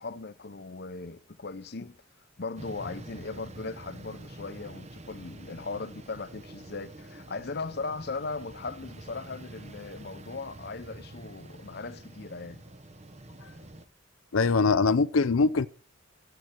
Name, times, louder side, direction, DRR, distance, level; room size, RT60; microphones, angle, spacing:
voice 1, 0.0-2.0 2.4-12.6, left 3 dB, 50° left, 0.8 m, -38 dB
sound 1, 2.6-13.9, right 1 dB, 35° right, 1.0 m, -47 dB
voice 2, 14.3-15.7, left 4 dB, 85° left, 0.6 m, -22 dB
23.0 x 7.9 x 4.5 m
head